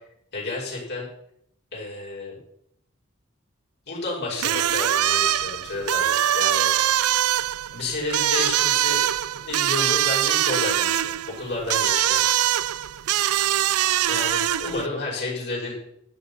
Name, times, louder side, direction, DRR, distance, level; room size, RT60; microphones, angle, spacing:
voice 1, 0.3-1.1 1.7-2.4 3.9-6.7 7.7-9.0 9.4-12.2 13.3-13.4 14.0-15.8, left 2 dB, 50° left, -4 dB, 6.1 m, -31 dB
sound 1, 4.4-14.9, right 12 dB, 90° right, 0.5 m, -23 dB
12.5 x 10.0 x 5.6 m, 0.74 s
head